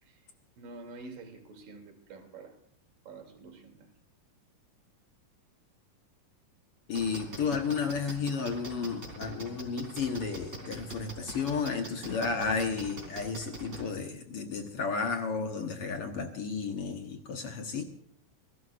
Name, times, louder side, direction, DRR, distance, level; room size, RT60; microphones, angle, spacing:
voice 1, 0.0-2.6 3.1-3.9, right 3 dB, 90° right, 3 dB, 4.5 m, -48 dB
voice 2, 6.9-17.8, left 5 dB, 55° left, 5 dB, 1.8 m, -32 dB
sound 1, 6.9-13.8, right 2 dB, 20° right, 3.6 m, -42 dB
29.0 x 12.5 x 2.5 m, 0.70 s
omnidirectional pair, 3.7 m